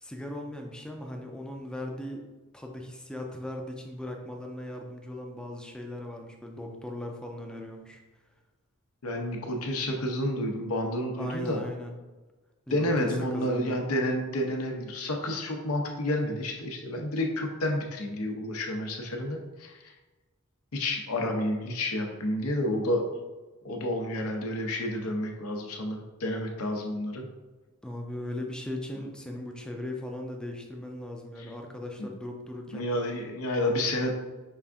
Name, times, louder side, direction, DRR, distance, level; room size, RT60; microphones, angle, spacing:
voice 1, 0.0-2.2 2.5-8.0 11.2-11.9 12.7-12.8 13.0-13.8 27.8-32.9, left 1 dB, 5° left, 2 dB, 0.4 m, -38 dB
voice 2, 9.0-11.6 12.7-19.9 20.7-23.1 23.6-27.2 32.0-32.1 32.7-34.1, left 1 dB, 85° left, 2 dB, 0.7 m, -30 dB
5.4 x 2.5 x 3.5 m, 1.2 s
head